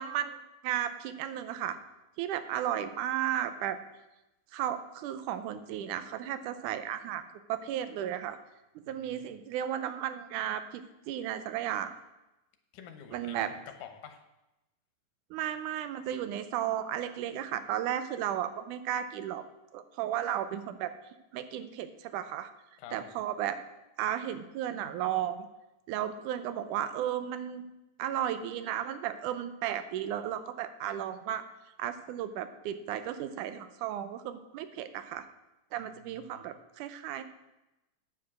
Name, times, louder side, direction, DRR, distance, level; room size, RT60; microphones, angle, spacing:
voice 1, 0.0-1.8 2.2-3.8 4.5-7.2 7.5-8.4 8.8-11.9 13.1-13.5 15.3-19.4 19.7-20.9 21.3-22.5 22.9-23.6 24.0-25.5 25.9-27.6 28.0-31.4 31.8-35.3 35.7-37.2, right 10 dB, 90° right, 11 dB, 2.2 m, -34 dB
voice 2, 8.8-9.4 12.7-14.2 22.8-23.1 35.8-36.4, left 8 dB, 80° left, 7 dB, 2.5 m, -49 dB
9.2 x 7.3 x 6.2 m, 0.96 s
omnidirectional pair, 3.6 m